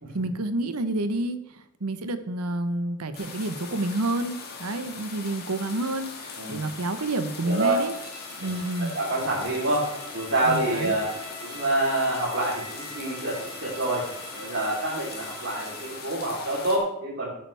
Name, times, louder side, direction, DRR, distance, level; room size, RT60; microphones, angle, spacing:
voice 1, 0.1-7.9 8.4-8.9 10.4-11.0, right 2 dB, 90° right, 10 dB, 1.0 m, -29 dB
sound 1, 3.1-16.8, left 5 dB, 45° left, 2.3 m, -40 dB
voice 2, 7.4-7.8 8.4-8.5 8.8-11.1 11.4-14.0 14.3-17.3, right 2 dB, 55° right, -7 dB, 3.5 m, -27 dB
Bowed string instrument, 7.8-16.1, right 2 dB, 35° right, 3.5 m, -44 dB
14.5 x 8.8 x 3.4 m, 0.84 s
head